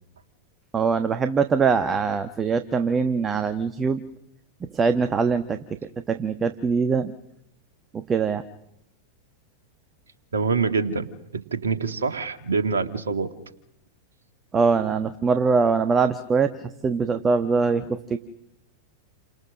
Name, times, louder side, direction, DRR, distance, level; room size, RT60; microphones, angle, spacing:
voice 1, 0.7-4.0 4.7-5.6 6.1-7.1 7.9-8.4 14.5-18.2, right 5 dB, 20° right, 10 dB, 1.2 m, -22 dB
voice 2, 10.3-11.1 11.3-13.3, right 5 dB, 70° right, 8 dB, 2.0 m, -25 dB
29.5 x 24.5 x 6.3 m, 0.80 s
figure-of-eight pair, 90°, 0 cm